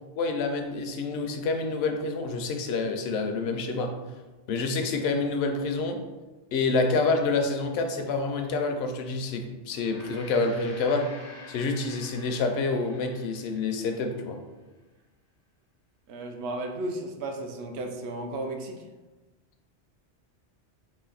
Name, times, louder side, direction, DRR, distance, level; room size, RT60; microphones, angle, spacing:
voice 1, 0.2-3.9 4.5-6.0 6.5-11.1 11.5-14.4, left 3 dB, 70° left, 5 dB, 0.8 m, -27 dB
Gong, 9.6-14.2, left 1 dB, 90° left, 1.2 m, -48 dB
voice 2, 16.1-18.8, right 2 dB, 75° right, 4 dB, 0.8 m, -34 dB
4.2 x 2.5 x 3.9 m, 1.2 s
omnidirectional pair, 1.2 m